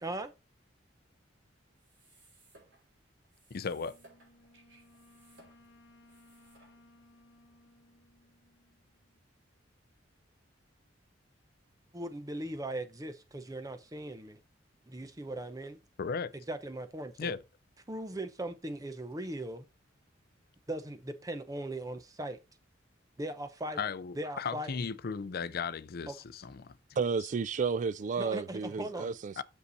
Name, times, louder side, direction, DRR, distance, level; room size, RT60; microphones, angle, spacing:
voice 1, 0.0-0.3 11.9-14.4 14.9-15.8 16.5-17.4 17.9-19.7 20.7-22.4 23.2-23.8 24.2-24.7 26.1-26.2 28.2-29.2, right 1 dB, 20° right, 0.8 m, -39 dB
sound 1, 1.7-7.1, right 2 dB, 70° right, 3.6 m, -63 dB
voice 2, 3.5-4.0 16.0-16.3 17.2-17.4 23.8-26.8 29.4-29.5, left 5 dB, 55° left, 0.5 m, -36 dB
Wind instrument woodwind instrument, 3.7-9.2, left 1 dB, 70° left, 0.9 m, -62 dB
voice 3, 27.0-29.4, right 5 dB, 40° right, 0.3 m, -32 dB
6.6 x 5.4 x 4.1 m
head